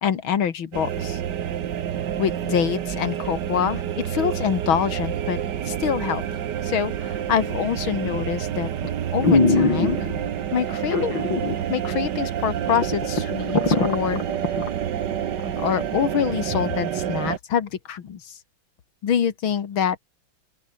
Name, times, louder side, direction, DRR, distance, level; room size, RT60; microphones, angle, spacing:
voice 1, 0.0-1.2 2.2-5.4 5.7-8.7 9.1-10.1 10.5-11.1 11.7-14.2 15.4-18.4 19.0-20.0, left 8 dB, 85° left, 2.5 m, -25 dB
sound 1, 0.7-17.4, right 9 dB, 60° right, 1.7 m, -28 dB
sound 2, 8.1-8.4 8.8-8.9 9.2-10.3 10.9-11.6 11.9-12.0 12.5-12.6 12.8-14.7 15.1-15.2, left 3 dB, 65° left, 5.4 m, -21 dB
open air
omnidirectional pair, 2.2 m